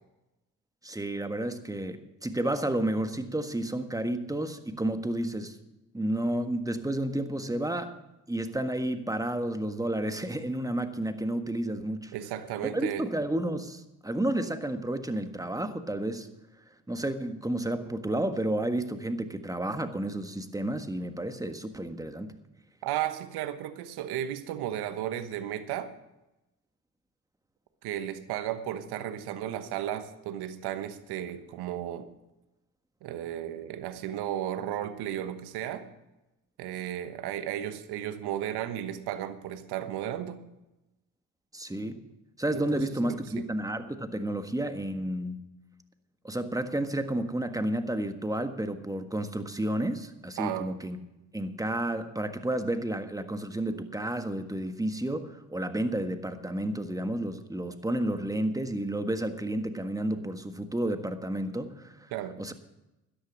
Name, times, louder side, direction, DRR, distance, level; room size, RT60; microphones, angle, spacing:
voice 1, 0.8-5.6 5.9-7.9 8.3-12.1 12.7-16.3 16.9-22.3 41.5-42.0 42.4-45.4 46.2-51.0 51.3-62.1 62.4-62.5, right 1 dB, 10° right, 8 dB, 1.5 m, -31 dB
voice 2, 12.1-13.0 22.8-25.9 27.8-32.1 33.0-35.9 36.6-40.4 42.5-43.4 50.4-50.7 62.1-62.4, right 11 dB, 75° right, 11 dB, 1.2 m, -34 dB
13.0 x 10.5 x 6.3 m, 0.96 s
hypercardioid pair, 55°, 39 cm